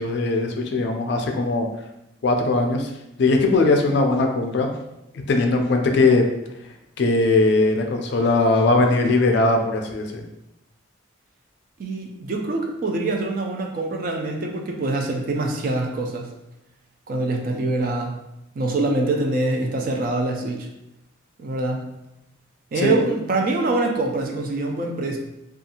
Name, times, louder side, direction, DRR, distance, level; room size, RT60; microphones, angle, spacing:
voice 1, 0.0-1.7 2.2-2.9 3.2-4.7 5.3-6.2 7.0-10.2 22.8-22.9, left 3 dB, 55° left, 3 dB, 0.3 m, -19 dB
voice 2, 11.8-16.3 17.1-18.2 18.6-20.7 21.4-21.9 22.7-25.2, right 2 dB, 45° right, 2 dB, 0.4 m, -24 dB
2.6 x 2.3 x 2.8 m, 0.86 s
head